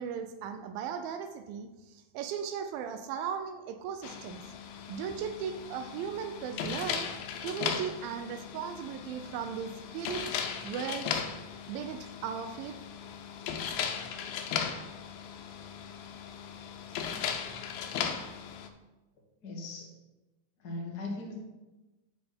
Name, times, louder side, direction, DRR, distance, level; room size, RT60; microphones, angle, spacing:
voice 1, 0.0-4.4 4.9-7.1 7.4-10.3 10.6-11.2 11.7-12.7, right 7 dB, 85° right, 7 dB, 2.3 m, -37 dB
sound 1, 4.0-18.7, left 7 dB, 85° left, 2.5 m, -37 dB
voice 2, 19.4-19.9 20.6-21.4, left 2 dB, 50° left, -1 dB, 1.2 m, -38 dB
9.1 x 4.8 x 5.1 m, 1.1 s
omnidirectional pair, 4.1 m